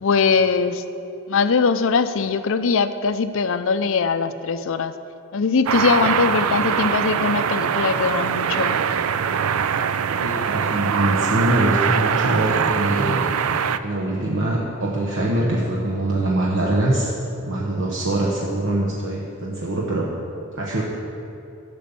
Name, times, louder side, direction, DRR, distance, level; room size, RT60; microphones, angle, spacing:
voice 1, 0.0-0.8 1.3-4.9 5.3-8.8, left 5 dB, 65° left, 11 dB, 0.5 m, -21 dB
sound 1, 5.7-13.8, right 7 dB, 85° right, 0.4 m, -22 dB
voice 2, 10.2-13.3 13.8-17.1 17.4-20.1 20.6-20.8, right 1 dB, 65° right, -3 dB, 1.1 m, -23 dB
11.0 x 7.0 x 7.0 m, 2.8 s
head